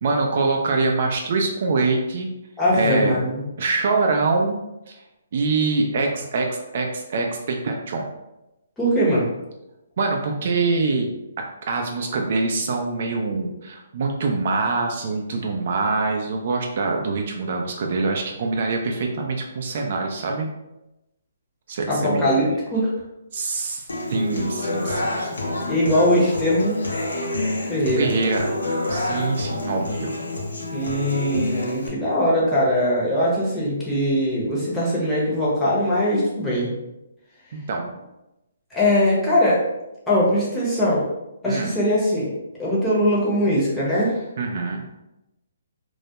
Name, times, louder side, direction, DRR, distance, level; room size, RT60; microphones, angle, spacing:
voice 1, 0.0-2.3 2.7-3.1 3.6-4.6 4.9-5.0 5.3-8.1 10.0-11.1 11.7-20.5 21.7-22.2 23.3-25.3 28.0-28.5 28.9-30.1 37.5-37.9 41.5-41.7 44.4-44.9, right 3 dB, 55° right, 1 dB, 0.3 m, -24 dB
voice 2, 2.6-3.5 8.8-9.3 21.9-22.9 25.7-26.8 27.7-28.1 30.7-36.7 38.7-39.6 40.1-41.1 41.4-42.3 42.6-44.2, equal, 10° left, -7 dB, 0.7 m, -21 dB
Human voice / Acoustic guitar, 23.9-31.9, left 2 dB, 85° left, 0.6 m, -28 dB
2.2 x 2.0 x 2.8 m, 0.94 s
hypercardioid pair, 150°, 0 cm